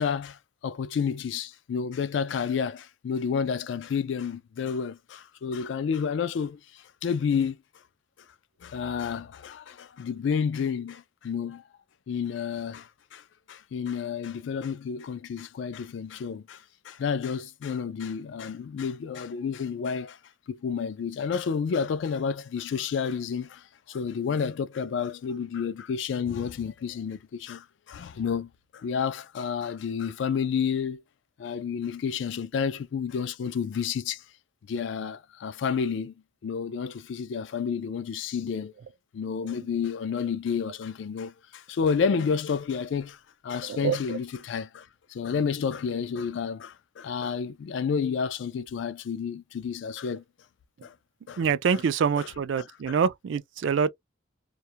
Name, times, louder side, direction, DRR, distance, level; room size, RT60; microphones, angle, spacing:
voice 1, 0.0-7.6 8.6-11.6 12.1-20.2 20.5-31.0 31.4-34.2 34.7-36.1 36.4-38.7 39.1-50.2 50.8-50.9 51.3-51.4 51.7-51.8 52.2-52.3 52.6-53.0, left 6 dB, 65° left, 0.3 m, -30 dB
voice 2, 43.7-44.2 51.4-53.9, right 6 dB, 70° right, 0.3 m, -26 dB
2.3 x 2.1 x 2.7 m
head